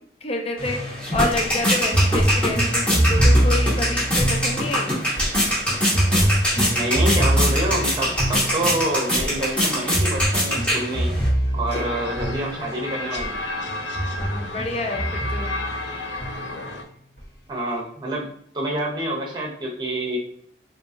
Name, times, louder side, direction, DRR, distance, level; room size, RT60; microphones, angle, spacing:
voice 1, 0.2-0.8 1.1-5.0 14.2-15.5, left 2 dB, 35° left, 3 dB, 0.6 m, -28 dB
sound 1, 0.6-12.8 13.2-13.4 13.7-15.8 16.2-16.7 17.2-17.3, right 1 dB, 60° left, 1.4 m, -24 dB
sound 2, 0.6-11.3, equal, 5° left, 1.1 m, -24 dB
voice 2, 6.7-11.1 11.5-13.4 17.5-18.3 18.5-20.2, right 1 dB, 25° right, -1 dB, 0.8 m, -27 dB
sound 3, 11.7-16.8, left 2 dB, 80° left, 0.6 m, -32 dB
3.7 x 2.8 x 2.6 m, 0.66 s
head